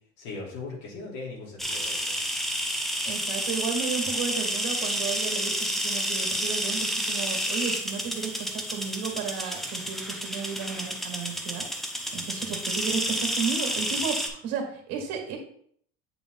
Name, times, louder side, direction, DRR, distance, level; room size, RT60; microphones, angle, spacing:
voice 1, 0.2-2.2, left 3 dB, 75° left, -4 dB, 2.8 m, -39 dB
sound 1, 1.6-14.3, equal, ahead, 0.3 m, -30 dB
voice 2, 3.0-11.7 12.1-15.4, right 6 dB, 60° right, 2 dB, 1.9 m, -33 dB
8.2 x 3.5 x 3.9 m, 0.63 s
cardioid pair, 180°, 29 cm